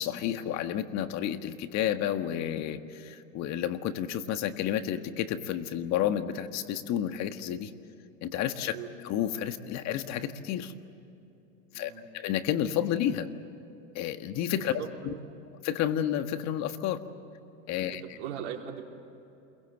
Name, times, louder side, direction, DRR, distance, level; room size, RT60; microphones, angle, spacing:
voice 1, 0.0-7.7 8.2-8.7 9.0-10.7 11.7-13.3 13.9-15.1 15.6-17.0 17.7-18.0, left 10 dB, 40° left, 9 dB, 1.6 m, -31 dB
voice 2, 11.7-12.1 14.6-15.6 17.8-18.8, right 9 dB, 60° right, 0 dB, 4.0 m, -41 dB
28.5 x 22.5 x 7.9 m, 2.8 s
supercardioid pair, 120°, 40 cm